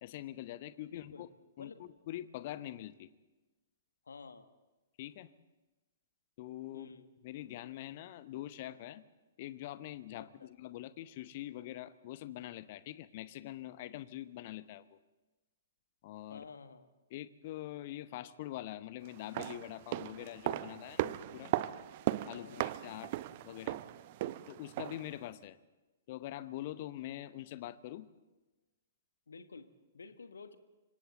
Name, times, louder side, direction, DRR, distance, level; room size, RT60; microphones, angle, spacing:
voice 1, 0.0-1.3 1.6-3.1 5.0-5.3 6.4-6.9 7.2-9.0 9.4-15.0 16.0-16.4 17.1-21.5 22.3-23.1 23.4-23.8 24.5-25.6 26.1-28.1, left 14 dB, 40° left, 15 dB, 0.9 m, -44 dB
voice 2, 0.9-1.3 1.6-1.9 4.0-4.5 6.7-7.1 10.1-10.5 16.3-16.9 22.3-22.7 29.3-30.6, left 4 dB, 65° left, 10 dB, 1.4 m, -51 dB
sound 1, 19.1-25.1 25.4-25.5, right 15 dB, 40° right, 0.6 m, -37 dB
27.0 x 24.5 x 4.1 m, 1.2 s
figure-of-eight pair, 115°, 0 cm